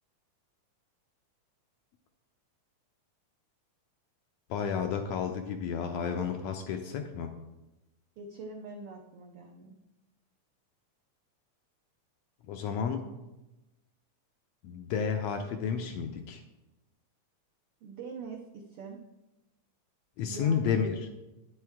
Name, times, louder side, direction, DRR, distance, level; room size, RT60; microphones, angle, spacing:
voice 1, 4.5-7.3 12.5-13.1 14.6-16.4 20.2-21.0, left 6 dB, 80° left, 5 dB, 1.6 m, -31 dB
voice 2, 8.2-9.8 17.8-19.0 20.2-20.7, right 4 dB, 85° right, 2 dB, 1.2 m, -44 dB
9.7 x 7.7 x 3.5 m, 1.0 s
omnidirectional pair, 3.5 m